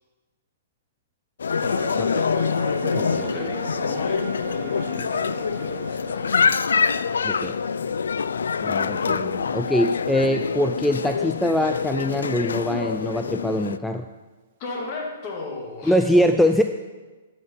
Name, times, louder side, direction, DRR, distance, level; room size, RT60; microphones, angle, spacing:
Wedding Cutting the Cake Utensils on Glasses, 1.4-13.8, left 6 dB, 80° left, 0.3 m, -25 dB
sound 1, 1.6-11.1 11.4-11.5, right 5 dB, 45° right, 1.4 m, -39 dB
voice 1, 2.0-2.3 2.9-3.5 7.2-7.6 8.6-14.1 15.9-16.6, left 1 dB, 5° left, 6 dB, 0.4 m, -23 dB
voice 2, 3.0-6.4 14.6-16.0, left 3 dB, 40° left, 0 dB, 2.7 m, -36 dB
11.5 x 5.9 x 5.7 m, 1.3 s
hypercardioid pair, 130°, 0 cm